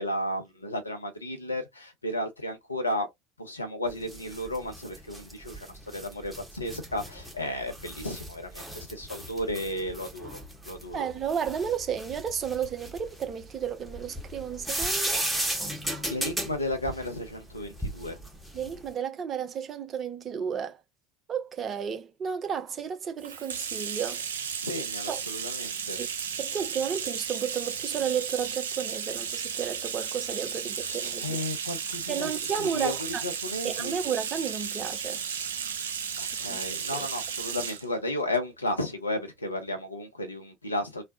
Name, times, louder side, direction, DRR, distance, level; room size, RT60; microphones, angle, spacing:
voice 1, 0.0-3.1 3.4-10.4 10.6-11.1 16.1-18.2 24.6-26.0 30.8-33.0 33.2-34.0 36.2-41.0, left 1 dB, 85° left, 0.6 m, -33 dB
sound 1, 3.9-18.9, right 1 dB, 5° right, 1.1 m, -36 dB
voice 2, 10.9-15.2 18.5-20.8 21.3-24.3 25.1-25.2 26.0-26.1 26.4-31.4 32.1-33.2 33.6-35.2 36.5-36.6 36.9-37.1, right 7 dB, 35° right, 0.6 m, -32 dB
Bathtub (filling or washing), 23.2-37.9, right 7 dB, 75° right, 0.4 m, -34 dB
3.2 x 2.1 x 2.6 m
figure-of-eight pair, 70°, 0 cm